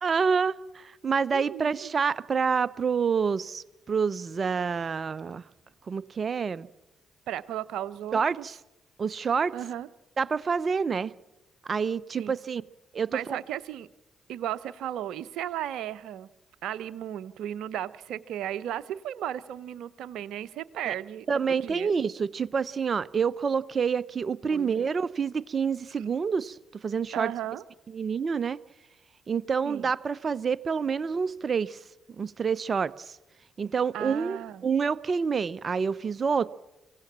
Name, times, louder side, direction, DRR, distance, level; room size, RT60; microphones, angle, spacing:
voice 1, 0.0-5.4 5.9-6.7 8.1-8.5 9.0-9.5 10.2-11.1 11.7-12.6 12.9-13.4 20.9-21.0 21.3-26.6 26.8-27.3 27.9-28.6 29.3-31.8 32.2-33.1 33.6-34.4 34.6-36.5, right 6 dB, 50° right, 18 dB, 0.8 m, -27 dB
voice 2, 1.3-1.9 7.3-8.5 9.5-9.9 12.2-12.3 13.1-13.9 14.3-16.3 16.6-21.9 24.5-24.9 27.1-27.6 29.6-29.9 33.9-34.6, right 11 dB, 75° right, 15 dB, 0.8 m, -35 dB
25.0 x 17.0 x 7.4 m, 0.99 s
hypercardioid pair, 50°, 0 cm